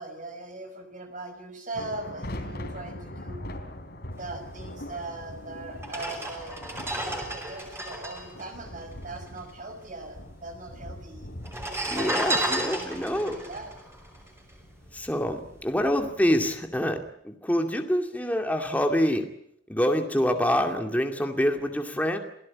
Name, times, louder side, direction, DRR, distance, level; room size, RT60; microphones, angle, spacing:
voice 1, 0.0-3.4 4.2-6.6 7.1-11.3 12.0-13.7, right 2 dB, 45° right, 6 dB, 5.9 m, -40 dB
sound 1, 1.7-17.1, left 1 dB, 60° left, 3.7 m, -43 dB
sound 2, 5.1-5.2 5.8-9.5 9.7-9.8 10.0-10.7 11.4-14.8 15.3-15.5, right 1 dB, 15° right, 5.7 m, -32 dB
voice 2, 11.9-13.4 14.9-19.3 19.7-22.2, equal, 10° left, 4 dB, 2.3 m, -26 dB
28.0 x 18.5 x 8.6 m, 0.75 s
head